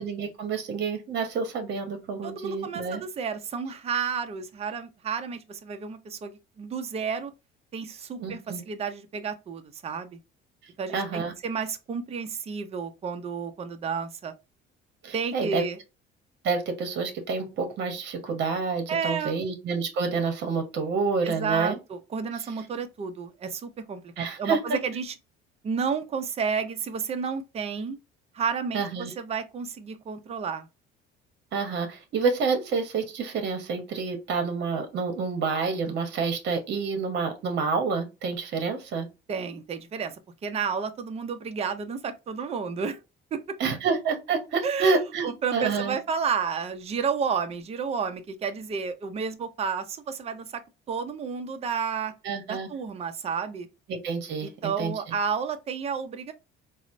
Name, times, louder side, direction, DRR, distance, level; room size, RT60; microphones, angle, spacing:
voice 1, 0.0-3.0 8.2-8.6 10.9-11.3 15.0-15.6 16.4-21.8 24.2-24.8 28.7-29.1 31.5-39.1 43.6-46.0 52.2-52.7 53.9-55.1, right 4 dB, 55° right, 0.8 m, -28 dB
voice 2, 2.2-6.3 6.6-7.3 7.7-10.2 10.8-14.3 15.1-15.8 18.9-19.4 21.2-25.1 25.6-28.0 28.3-30.7 39.3-40.2 40.4-43.0 43.3-43.4 44.6-45.0 45.2-50.6 50.9-52.1 52.5-53.7 54.4-56.3, right 6 dB, 30° right, 0.5 m, -31 dB
4.1 x 2.0 x 2.5 m
cardioid pair, 110°, 21 cm